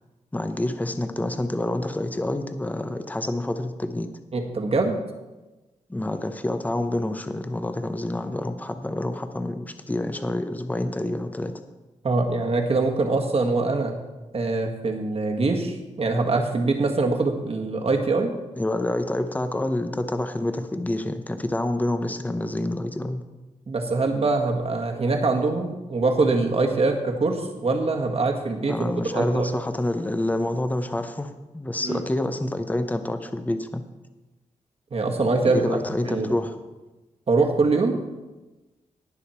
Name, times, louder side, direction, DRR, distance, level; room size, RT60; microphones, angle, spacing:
voice 1, 0.3-4.1 5.9-11.6 18.6-23.2 28.7-33.8 35.4-36.6, left 1 dB, 10° left, 8 dB, 0.8 m, -27 dB
voice 2, 4.3-5.0 12.0-14.0 14.3-18.3 23.7-29.5 31.8-32.0 34.9-35.8 36.0-36.3 37.3-38.0, right 3 dB, 50° right, 3 dB, 1.7 m, -23 dB
18.5 x 6.5 x 4.4 m, 1.1 s
cardioid pair, 85°, 13 cm